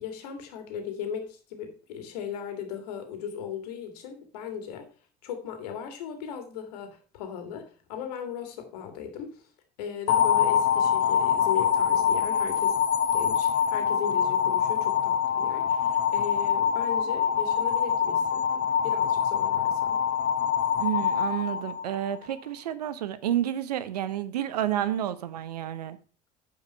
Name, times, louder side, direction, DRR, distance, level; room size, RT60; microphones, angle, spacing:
voice 1, 0.0-4.9 5.2-9.4 9.8-12.8 13.1-20.0, left 8 dB, 80° left, 2.2 m, -37 dB
sound 1, 10.1-22.2, left 8 dB, 60° left, 0.9 m, -25 dB
voice 2, 20.8-26.0, right 11 dB, 85° right, 0.8 m, -30 dB
9.5 x 4.9 x 5.4 m
hypercardioid pair, 65°, 20 cm